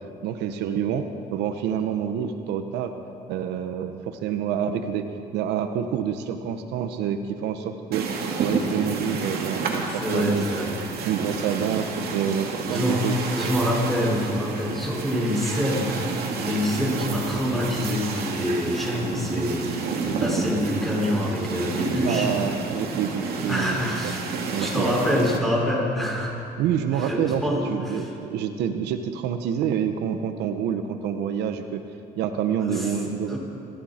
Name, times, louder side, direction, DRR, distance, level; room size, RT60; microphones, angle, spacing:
voice 1, 0.2-2.9 3.3-5.1 5.3-8.1 8.4-10.7 11.0-13.2 22.0-23.9 24.3-24.9 26.6-31.8 32.2-33.4, right 8 dB, 85° right, 7 dB, 1.0 m, -27 dB
sound 1, 7.9-25.4, right 4 dB, 65° right, 2.4 m, -30 dB
voice 2, 10.0-10.8 12.7-13.0 13.3-16.0 16.4-22.3 23.5-24.2 24.5-26.4 26.9-28.1 32.6-32.9 33.3-33.4, equal, ahead, -3 dB, 5.3 m, -26 dB
24.0 x 14.0 x 4.4 m, 2.6 s
cardioid pair, 110°, 17 cm